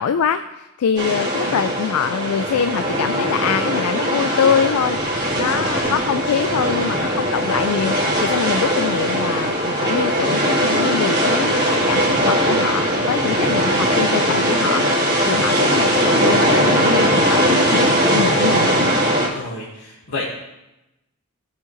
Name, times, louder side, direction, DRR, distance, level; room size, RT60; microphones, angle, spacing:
voice 1, 0.0-18.7, left 7 dB, 85° left, 10 dB, 0.3 m, -24 dB
sound 1, 1.0-19.3, equal, 25° right, 2.1 m, -19 dB
voice 2, 19.3-20.2, left 2 dB, 65° left, -7 dB, 1.6 m, -30 dB
14.5 x 4.9 x 3.1 m, 0.95 s
head